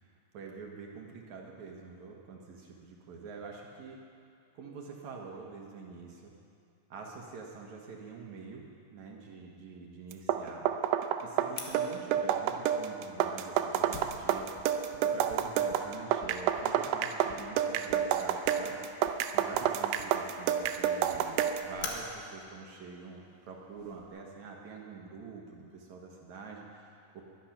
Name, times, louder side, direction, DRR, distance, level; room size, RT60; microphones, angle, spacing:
voice 1, 0.0-4.0 4.5-6.3 6.9-8.6 8.9-10.7 11.2-14.5 15.0-18.8 19.3-27.3, right 4 dB, 65° right, 0 dB, 1.8 m, -46 dB
sound 1, 10.1-21.7, right 9 dB, 85° right, 2.7 m, -30 dB
Fire, 11.6-24.1, left 5 dB, 70° left, 3.4 m, -49 dB
21.0 x 11.5 x 5.9 m, 2.5 s
omnidirectional pair, 5.1 m